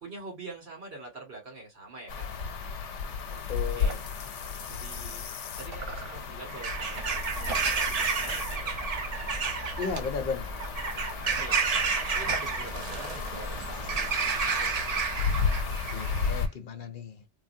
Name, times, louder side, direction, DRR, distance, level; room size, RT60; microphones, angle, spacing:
voice 1, 0.0-2.6 3.3-3.5 3.7-3.9 4.4-5.2 5.6-8.8 11.4-14.7, right 3 dB, 65° right, 2.0 m, -45 dB
sound 1, 2.1-16.5, left 5 dB, 85° left, 0.9 m, -34 dB
sound 2, 2.5-2.8 3.1-3.2 3.4-5.4 5.7-8.0 8.4-8.7 9.1-10.6 11.1-14.2, right 5 dB, 85° right, 1.1 m, -46 dB
voice 2, 3.5-4.0 9.8-10.5 15.9-17.2, left 5 dB, 55° left, 0.6 m, -34 dB
Bird vocalization bird call bird song / Crow, 6.5-16.4, right 5 dB, 45° right, 0.5 m, -31 dB
3.2 x 2.1 x 2.6 m
omnidirectional pair, 1.2 m